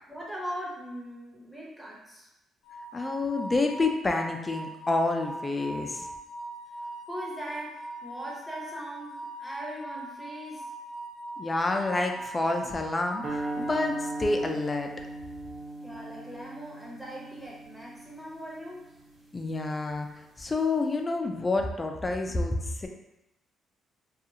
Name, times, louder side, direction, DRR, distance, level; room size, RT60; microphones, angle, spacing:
voice 1, 0.1-2.3 7.1-10.7 15.8-18.8, equal, ahead, -4 dB, 0.8 m, -40 dB
sound 1, 2.6-14.9, right 1 dB, 85° left, 0.7 m, -41 dB
voice 2, 2.9-6.0 11.4-14.9 19.3-20.1 20.4-22.9, left 2 dB, 25° left, 3 dB, 0.3 m, -28 dB
sound 2, 13.2-19.6, right 1 dB, 40° right, 0.6 m, -38 dB
2.5 x 2.3 x 2.7 m, 0.93 s
cardioid pair, 90°, 0 cm